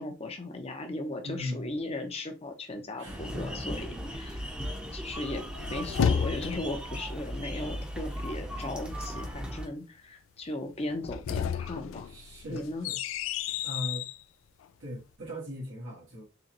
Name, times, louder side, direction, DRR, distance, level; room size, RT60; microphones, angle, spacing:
voice 1, 0.0-4.4 4.9-5.4 5.7-12.1 12.5-12.9, left 2 dB, 30° left, 0.6 m, -37 dB
voice 2, 1.2-1.7 3.0-3.8 4.3-4.6 12.0-13.0 13.6-14.0 14.8-16.2, left 1 dB, 85° right, 1.5 m, -39 dB
sound 1, 3.0-9.7, equal, 5° right, 0.7 m, -37 dB
sound 2, 5.4-6.9 10.9-14.2, left 7 dB, 85° left, 0.3 m, -31 dB
3.9 x 3.0 x 2.9 m
head